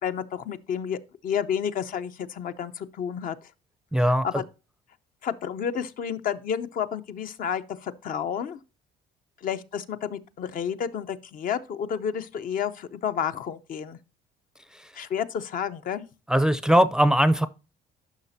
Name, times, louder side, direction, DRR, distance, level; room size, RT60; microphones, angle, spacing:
voice 1, 0.0-3.4 4.1-4.4 5.2-8.6 9.4-14.0 14.9-16.0, left 8 dB, 55° left, 0.7 m, -30 dB
voice 2, 3.9-4.3 14.7-14.9 16.3-17.5, equal, 5° right, 0.5 m, -20 dB
11.0 x 5.8 x 2.7 m
cardioid pair, 110°, 17 cm